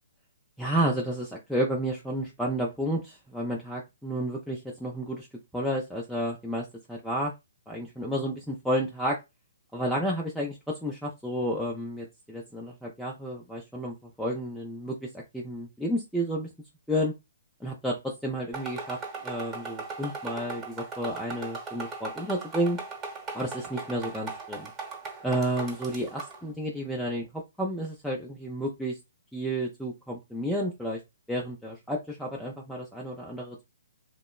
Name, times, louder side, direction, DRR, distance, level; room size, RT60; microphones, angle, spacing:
voice 1, 0.6-5.3 5.5-7.3 7.7-9.2 9.7-16.5 16.9-17.1 17.6-19.0 19.2-22.8 23.3-24.7 25.2-29.0 29.3-31.0 31.3-33.6, equal, ahead, -3 dB, 0.4 m, -31 dB
sound 1, 18.5-26.4, right 4 dB, 20° right, 0.9 m, -39 dB
2.9 x 2.0 x 2.3 m, 0.22 s
hypercardioid pair, 140°, 0 cm